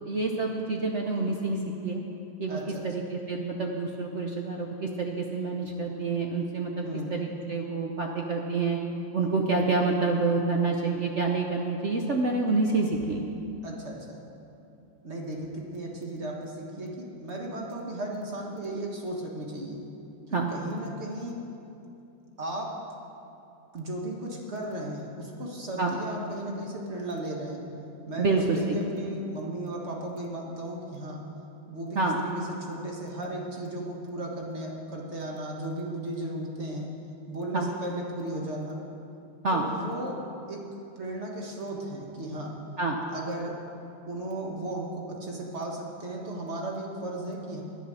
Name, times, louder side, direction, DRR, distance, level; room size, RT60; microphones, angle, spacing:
voice 1, 0.0-2.0 2.4-8.8 9.1-13.3 20.3-20.5 25.8-26.0 28.2-28.8 31.9-32.2 37.5-37.7 39.4-39.7 42.8-43.0, right 3 dB, 65° right, 1 dB, 0.7 m, -28 dB
voice 2, 2.5-2.8 6.8-7.1 13.6-14.2 15.0-19.8 20.3-21.4 22.4-22.7 23.7-27.6 28.1-31.2 31.7-36.9 37.3-38.8 39.5-40.2 40.5-40.6 41.0-42.6 43.1-43.6 44.1-47.6, right 1 dB, 35° right, -1 dB, 1.6 m, -35 dB
10.0 x 10.0 x 6.4 m, 2.8 s
omnidirectional pair, 2.2 m